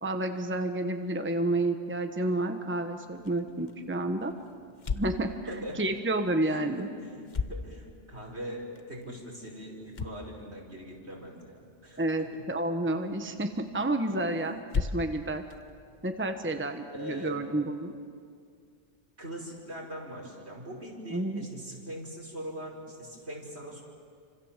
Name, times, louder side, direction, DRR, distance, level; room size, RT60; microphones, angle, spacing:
voice 1, 0.0-4.3 4.9-6.9 12.0-15.4 16.0-17.9 21.1-21.4, right 2 dB, 10° right, 6 dB, 1.2 m, -30 dB
sound 1, 3.1-16.7, left 4 dB, 45° left, 1.1 m, -41 dB
voice 2, 5.5-5.8 6.4-12.3 15.9-16.0 16.9-17.4 19.2-23.8, equal, 70° right, -1 dB, 5.4 m, -41 dB
28.5 x 26.0 x 7.4 m, 2.2 s
omnidirectional pair, 1.2 m